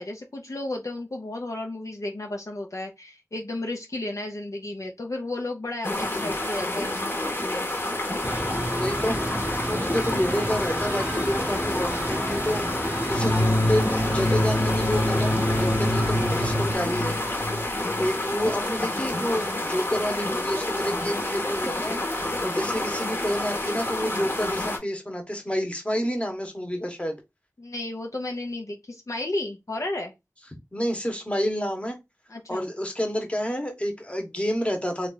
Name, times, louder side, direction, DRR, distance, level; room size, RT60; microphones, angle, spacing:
voice 1, 0.0-7.7 22.4-22.6 27.6-30.1 32.3-32.7, left 2 dB, 60° left, 0.6 m, -33 dB
sound 1, 5.8-24.8, left 1 dB, 40° left, 1.0 m, -29 dB
sound 2, 8.2-16.8, right 1 dB, 20° right, 0.4 m, -32 dB
voice 2, 8.7-9.2 9.7-17.4 18.0-27.2 30.7-32.0 32.5-35.1, equal, 20° left, 1.1 m, -29 dB
sound 3, 13.1-18.5, left 1 dB, 80° left, 1.5 m, -26 dB
3.3 x 2.4 x 3.9 m
wide cardioid pair, 55°, 6 cm